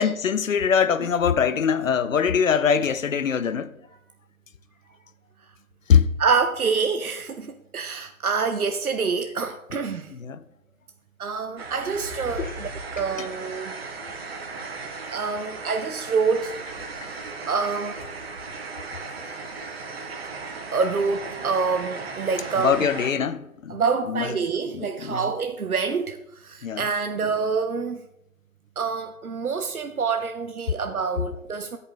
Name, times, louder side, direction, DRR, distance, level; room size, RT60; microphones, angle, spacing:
voice 1, 0.0-3.7 5.9-6.1 10.1-10.4 12.4-12.6 13.2-13.3 17.0-17.1 19.2-19.4 22.6-23.8 24.1-24.4 24.7-25.3 26.6-26.9, left 7 dB, 65° left, 0.7 m, -23 dB
voice 2, 6.2-10.1 11.2-12.7 13.0-13.7 15.1-16.5 17.5-18.0 20.7-22.8 23.7-28.0 28.8-31.8, right 5 dB, 85° right, 0.9 m, -26 dB
sound 1, 11.6-23.1, right 3 dB, 45° right, 1.3 m, -36 dB
10.0 x 5.6 x 7.0 m
figure-of-eight pair, 150°, 42 cm